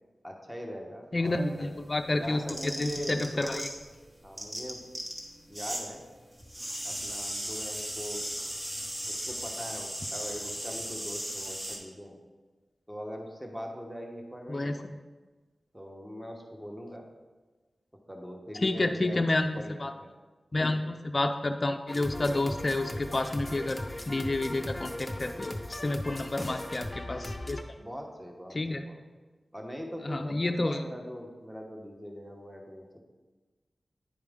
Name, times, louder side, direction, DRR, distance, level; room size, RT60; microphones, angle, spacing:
voice 1, 0.2-1.7 2.1-3.6 4.2-4.8 5.5-6.0 6.8-8.3 9.1-12.2 12.9-14.7 15.7-17.0 18.1-19.7 20.0-20.1 20.6-20.8 26.3-26.8 27.8-29.0 29.5-33.0, equal, 10° right, 1 dB, 1.1 m, -41 dB
voice 2, 1.1-2.4 2.8-3.7 14.5-14.9 18.6-19.5 19.8-19.9 20.5-23.8 24.1-27.6 28.5-28.8 30.1-30.8, left 2 dB, 40° left, 5 dB, 0.3 m, -29 dB
sound 1, 1.3-4.0 4.2-5.9 6.1-11.8, equal, 35° right, 1.5 m, -37 dB
sound 2, 21.9-27.6, left 1 dB, 15° left, 0.7 m, -38 dB
10.0 x 4.7 x 3.6 m, 1.3 s
wide cardioid pair, 70°, 0 cm